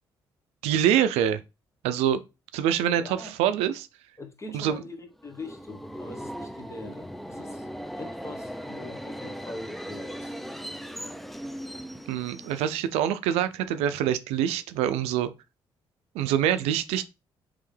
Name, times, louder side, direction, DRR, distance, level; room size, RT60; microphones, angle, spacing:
voice 1, 0.6-1.4 1.8-2.2 2.5-3.9 4.5-4.8 12.1-15.3 16.1-17.0, right 10 dB, 85° right, 0.4 m, -25 dB
voice 2, 3.0-3.3 4.2-10.4, left 2 dB, 30° left, 1.2 m, -43 dB
Subway metro underground, 5.2-12.9, equal, ahead, 0.5 m, -38 dB
3.5 x 3.3 x 3.3 m
supercardioid pair, 50°, 10 cm